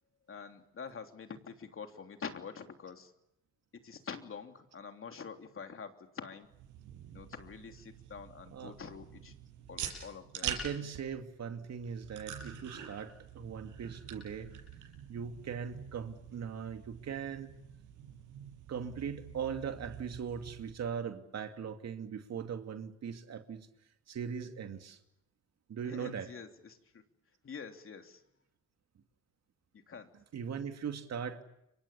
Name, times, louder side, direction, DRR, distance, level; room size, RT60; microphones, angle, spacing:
voice 1, 0.3-3.1 3.8-6.5 7.1-9.3 9.7-10.5 25.8-27.0 27.4-28.2 29.7-30.1, left 6 dB, 45° left, 6 dB, 3.2 m, -46 dB
sound 1, 6.4-20.7, right 8 dB, 85° right, 7.0 m, -46 dB
voice 2, 8.4-8.7 10.4-14.5 15.1-17.6 18.7-23.7 24.1-25.0 25.7-26.3 30.1-31.4, right 7 dB, 60° right, 7 dB, 2.6 m, -40 dB
29.5 x 24.0 x 7.1 m, 0.81 s
cardioid pair, 90°, 30 cm